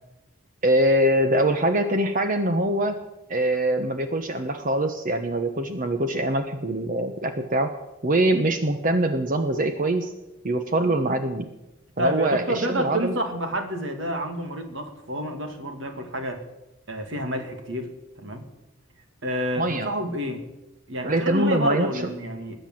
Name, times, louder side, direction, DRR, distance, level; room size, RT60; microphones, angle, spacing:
voice 1, 0.6-3.0 3.3-7.7 8.0-10.1 10.4-11.5 12.0-13.2 19.6-19.9 21.0-21.9, right 1 dB, 40° right, 8 dB, 1.0 m, -23 dB
voice 2, 12.0-16.4 16.9-18.5 19.2-20.4 20.9-22.6, right 1 dB, 60° right, 5 dB, 2.4 m, -29 dB
20.5 x 9.0 x 7.6 m, 0.96 s
head